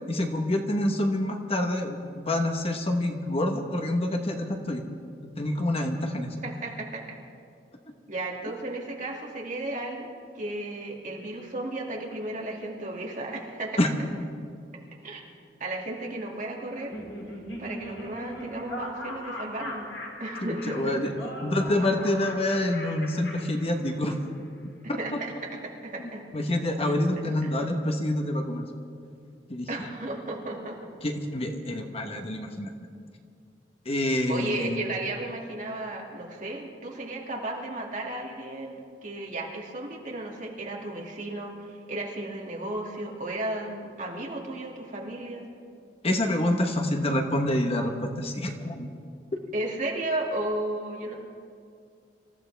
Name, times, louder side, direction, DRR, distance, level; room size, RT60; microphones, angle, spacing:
voice 1, 0.1-4.8 5.2-6.3 13.8-13.9 20.4-21.1 21.4-24.2 24.9-25.2 26.3-28.6 29.5-29.7 31.0-32.7 33.8-34.8 46.0-48.9, left 1 dB, 35° left, 4 dB, 1.2 m, -27 dB
voice 2, 6.4-7.0 8.1-10.1 10.3-13.8 15.0-15.2 15.6-17.0 17.6-19.9 20.2-20.9 25.0-26.2 27.4-27.5 29.7-30.8 34.3-38.8 39.0-45.4 49.5-51.1, right 2 dB, 45° right, -2 dB, 2.4 m, -34 dB
Laughter, 16.7-24.2, left 1 dB, 75° left, 3.2 m, -39 dB
26.0 x 14.5 x 3.4 m, 2.4 s
head